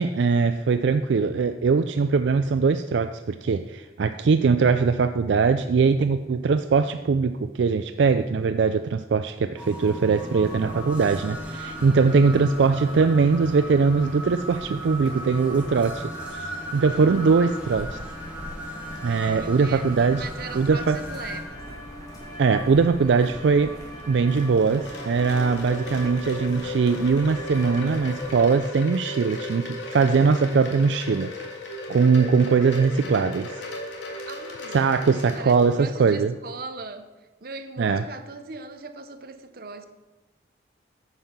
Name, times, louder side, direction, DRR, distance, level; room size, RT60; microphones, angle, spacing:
voice 1, 0.0-18.0 19.0-20.3 20.5-21.0 22.4-23.8 24.1-31.3 31.9-33.6 34.7-36.3 37.8-38.0, right 5 dB, 75° right, 0.4 m, -21 dB
sound 1, 9.6-21.4, equal, 5° right, 2.0 m, -37 dB
sound 2, 10.4-28.5, equal, 20° left, 2.2 m, -41 dB
voice 2, 12.2-12.6 19.4-21.6 34.3-34.8 35.2-37.1 37.4-39.8, right 3 dB, 55° right, 0.8 m, -39 dB
Wind chime, 23.9-36.1, left 2 dB, 85° left, 2.2 m, -36 dB
9.8 x 5.7 x 7.2 m
head